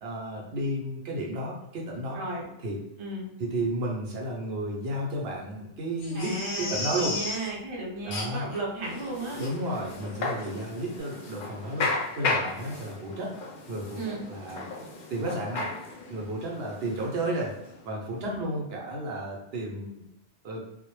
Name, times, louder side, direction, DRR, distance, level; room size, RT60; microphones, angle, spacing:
voice 1, 0.0-2.2 2.6-2.8 3.4-7.2 8.0-8.5 9.4-13.3 13.7-14.6 15.1-15.7 16.1-17.5 17.8-20.0 20.4-20.6, right 1 dB, 65° right, -2 dB, 0.8 m, -32 dB
voice 2, 2.1-2.5 3.0-3.3 6.1-9.4 14.0-14.2 18.2-18.5, right 1 dB, 35° right, -3 dB, 0.5 m, -35 dB
Crying sobbing, 6.0-7.5 8.1-8.6 9.0-9.1 9.4-9.5 10.0-10.2 10.4-10.5, left 3 dB, 90° left, 0.9 m, -34 dB
sound 1, 8.8-18.1, left 3 dB, 60° left, 0.6 m, -35 dB
2.1 x 2.0 x 3.0 m, 0.87 s
omnidirectional pair, 1.2 m